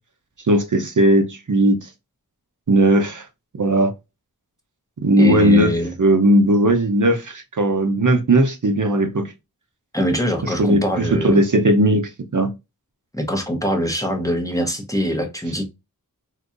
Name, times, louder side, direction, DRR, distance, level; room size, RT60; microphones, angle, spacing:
voice 1, 0.4-1.9 2.7-3.3 3.5-3.9 5.0-5.7 6.0-9.3 10.4-12.5, right 1 dB, 50° right, 0.7 m, -17 dB
voice 2, 5.2-5.9 9.9-11.4 13.1-15.7, equal, 10° left, 0.8 m, -23 dB
3.7 x 2.7 x 2.4 m
wide cardioid pair, 50°, 38 cm